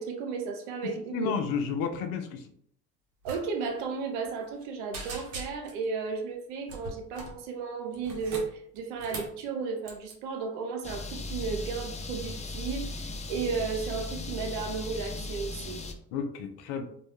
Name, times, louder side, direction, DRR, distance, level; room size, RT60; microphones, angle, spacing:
voice 1, 0.0-1.4 3.2-15.8, right 5 dB, 90° right, 4 dB, 0.5 m, -34 dB
voice 2, 1.1-2.4 16.1-16.8, left 5 dB, 80° left, 7 dB, 0.5 m, -31 dB
sound 1, 3.2-3.4 3.7-3.8 4.2-4.6 4.9-5.8 6.7-7.4 7.9-9.4 9.8-10.1, right 2 dB, 70° right, 0.9 m, -41 dB
sound 2, 10.8-15.9, left 2 dB, 20° left, 0.4 m, -37 dB
2.2 x 2.1 x 2.9 m, 0.66 s
hypercardioid pair, 55°, 35 cm